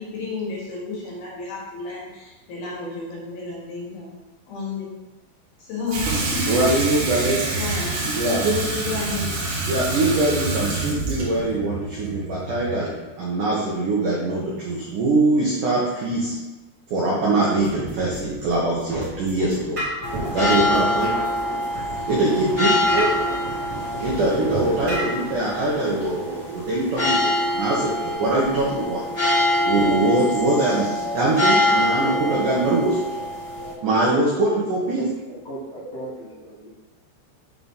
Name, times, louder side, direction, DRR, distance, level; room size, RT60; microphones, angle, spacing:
voice 1, 0.0-4.1 4.5-4.9 5.6-6.6 7.4-8.2 8.7-9.6, left 3 dB, 60° left, -5 dB, 3.1 m, -32 dB
Water tap faucet / Sink (filling or washing), 5.9-12.9, right 3 dB, 55° right, 2.7 m, -27 dB
voice 2, 6.5-7.4 8.1-8.7 8.9-9.0 9.7-16.4 16.9-19.8 20.3-21.1 22.1-23.1 24.0-29.0 29.6-33.0 33.8-35.0 36.0-36.1, right 2 dB, 80° right, -5 dB, 1.8 m, -22 dB
sound 1, 17.6-25.0, right 1 dB, 30° right, 2.1 m, -33 dB
sound 2, 20.0-33.7, left 1 dB, 25° left, 1.7 m, -25 dB
voice 3, 35.4-36.7, right 1 dB, 85° left, -11 dB, 1.4 m, -36 dB
7.7 x 3.8 x 5.6 m, 1.1 s
omnidirectional pair, 5.5 m